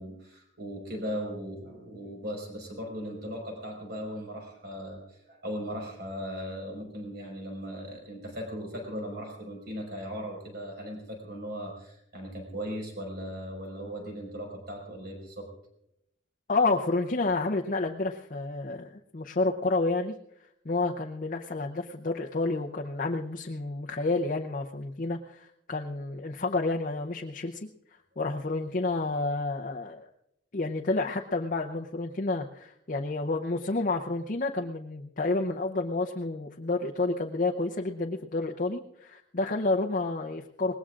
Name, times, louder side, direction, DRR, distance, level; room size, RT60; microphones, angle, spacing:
voice 1, 0.0-15.5, equal, 55° right, 0 dB, 5.3 m, -38 dB
voice 2, 16.5-20.1 20.6-27.7 28.2-30.1 30.5-40.7, left 3 dB, 40° left, 1 dB, 0.7 m, -30 dB
25.0 x 20.0 x 2.5 m, 0.79 s
head